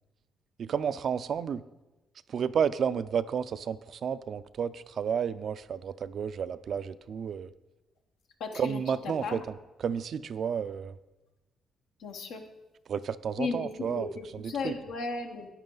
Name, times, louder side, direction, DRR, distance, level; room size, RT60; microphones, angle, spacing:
voice 1, 0.6-1.6 2.3-7.5 8.6-11.0 12.9-14.1 14.3-14.8, right 7 dB, 55° right, 14 dB, 0.4 m, -31 dB
voice 2, 8.4-9.4 12.0-12.4 13.4-15.5, left 4 dB, 80° left, 4 dB, 1.2 m, -35 dB
10.5 x 9.5 x 3.9 m, 1.1 s
cardioid pair, 90°, 0 cm